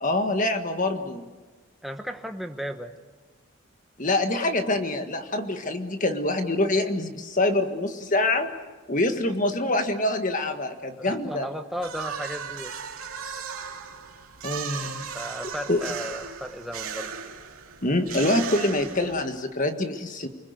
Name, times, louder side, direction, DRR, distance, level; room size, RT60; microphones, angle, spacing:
voice 1, 0.0-1.2 4.0-8.5 8.9-11.5 14.4-15.1 15.7-15.8 17.8-20.3, left 2 dB, 35° left, 6 dB, 1.7 m, -25 dB
voice 2, 1.8-3.0 11.0-12.7 15.1-17.2, equal, ahead, 5 dB, 1.2 m, -35 dB
sound 1, 11.8-19.5, right 7 dB, 90° right, 2.4 m, -37 dB
29.5 x 21.0 x 8.2 m, 1.3 s
head